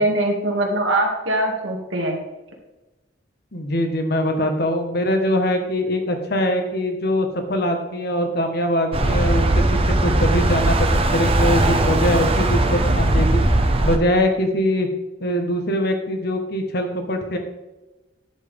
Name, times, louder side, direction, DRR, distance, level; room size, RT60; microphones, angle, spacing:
voice 1, 0.0-2.2, right 1 dB, 85° right, 1 dB, 2.2 m, -22 dB
voice 2, 3.5-13.4 13.8-14.9 15.2-17.4, equal, 60° left, 5 dB, 1.5 m, -22 dB
sound 1, 8.9-14.0, right 1 dB, 30° right, 0.8 m, -19 dB
10.5 x 7.5 x 3.6 m, 1.1 s
head